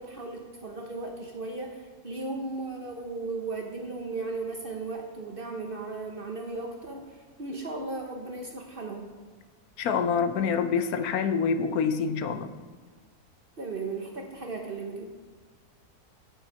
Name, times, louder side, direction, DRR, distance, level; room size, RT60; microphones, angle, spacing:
voice 1, 0.0-9.1 13.6-15.1, right 3 dB, 40° right, 2 dB, 1.0 m, -36 dB
voice 2, 9.8-12.5, left 6 dB, 70° left, 9 dB, 1.1 m, -26 dB
8.3 x 7.9 x 4.5 m, 1.5 s
omnidirectional pair, 1.7 m